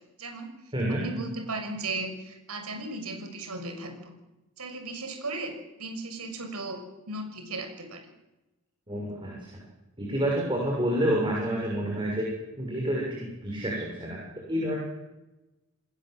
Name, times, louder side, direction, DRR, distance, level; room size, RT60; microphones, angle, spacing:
voice 1, 0.2-0.5 0.9-4.1 4.6-5.5 5.8-6.8 7.1-8.1, right 2 dB, 90° right, 6 dB, 6.2 m, -36 dB
voice 2, 0.7-1.0 8.9-9.6 10.0-12.3 12.6-14.2 14.5-14.7, right 1 dB, 20° right, -2 dB, 6.7 m, -28 dB
28.5 x 20.0 x 7.8 m, 1.0 s
head